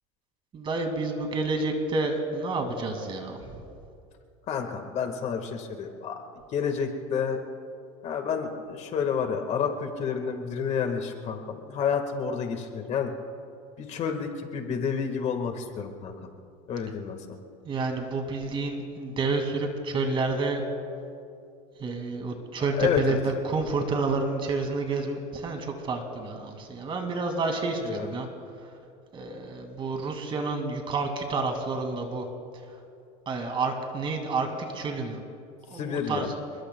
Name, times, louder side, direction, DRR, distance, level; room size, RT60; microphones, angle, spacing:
voice 1, 0.5-3.6 17.7-20.6 21.8-28.3 29.1-32.3 32.7-32.8 33.3-35.2 35.7-36.3, right 3 dB, 30° right, 4 dB, 2.2 m, -29 dB
voice 2, 4.5-6.2 6.5-7.4 8.0-13.1 13.8-16.1 16.7-17.4 22.8-23.2 27.8-28.1 35.7-36.3, left 6 dB, 40° left, 5 dB, 1.6 m, -29 dB
29.0 x 21.5 x 2.3 m, 2.5 s
supercardioid pair, 135°, 18 cm